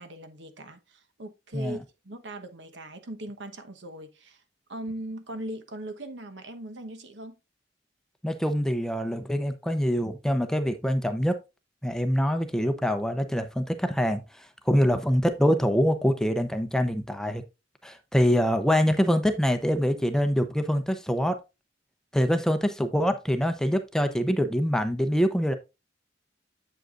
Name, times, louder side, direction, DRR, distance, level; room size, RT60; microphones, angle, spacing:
voice 1, 0.0-1.8 2.0-4.4 4.7-7.4, right 1 dB, 70° right, 1.1 m, -39 dB
voice 2, 8.2-11.4 11.8-17.4 17.8-21.4 22.1-25.5, equal, 5° left, 0.6 m, -25 dB
7.8 x 7.7 x 2.5 m
head